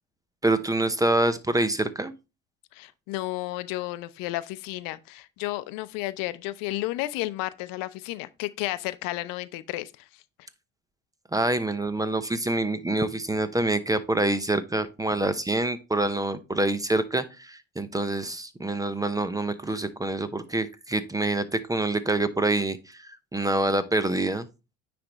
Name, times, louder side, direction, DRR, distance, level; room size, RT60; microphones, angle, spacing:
voice 1, 0.4-2.1 11.3-24.5, right 2 dB, 10° right, 0.7 m, -26 dB
voice 2, 2.7-10.0, left 17 dB, 65° left, 0.7 m, -32 dB
9.5 x 3.4 x 3.9 m
hypercardioid pair, 80°, 36 cm